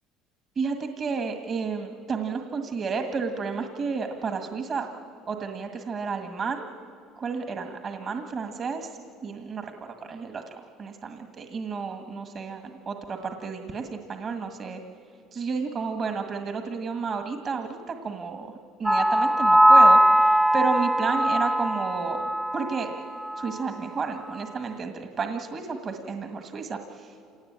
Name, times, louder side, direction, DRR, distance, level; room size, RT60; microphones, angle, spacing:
voice 1, 0.6-4.9 5.3-6.7 7.2-14.8 15.3-22.9 23.4-27.1, right 5 dB, 40° right, 6 dB, 1.7 m, -32 dB
sound 1, 18.9-22.9 23.2-23.5, right 1 dB, 5° right, 0.6 m, -20 dB
27.0 x 18.0 x 8.8 m, 2.4 s
supercardioid pair, 95°, 0 cm